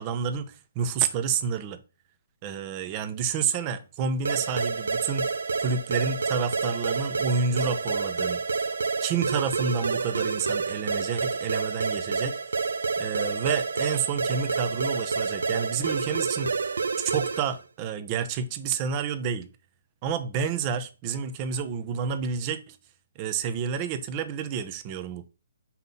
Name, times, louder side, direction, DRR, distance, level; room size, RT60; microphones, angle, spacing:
voice 1, 0.0-1.8 2.4-5.3 5.6-8.4 9.0-12.7 13.0-16.6 17.0-19.5 20.0-22.8 23.2-25.3, right 6 dB, 30° right, 0.9 m, -29 dB
sound 1, 4.2-17.6, right 4 dB, 75° right, 0.6 m, -29 dB
5.8 x 4.1 x 5.6 m
hypercardioid pair, 140°, 0 cm